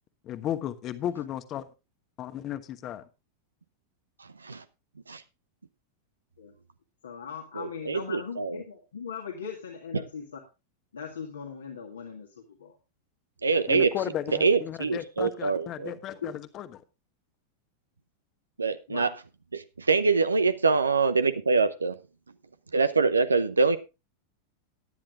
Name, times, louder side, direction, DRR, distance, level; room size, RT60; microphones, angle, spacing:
voice 1, 0.2-1.6 2.2-3.0 13.7-16.8, left 11 dB, 35° left, 11 dB, 1.2 m, -34 dB
voice 2, 4.2-4.6 5.1-5.2 7.6-8.6 9.9-10.0 13.4-13.9 14.4-15.9 18.6-19.1 19.5-22.0 22.7-23.8, right 4 dB, 75° right, 12 dB, 0.8 m, -25 dB
voice 3, 7.0-10.4 10.9-12.8 16.2-16.4 18.9-19.1, left 6 dB, 70° left, 1 dB, 1.8 m, -39 dB
18.0 x 10.5 x 2.4 m, 0.27 s
figure-of-eight pair, 90°, 0 cm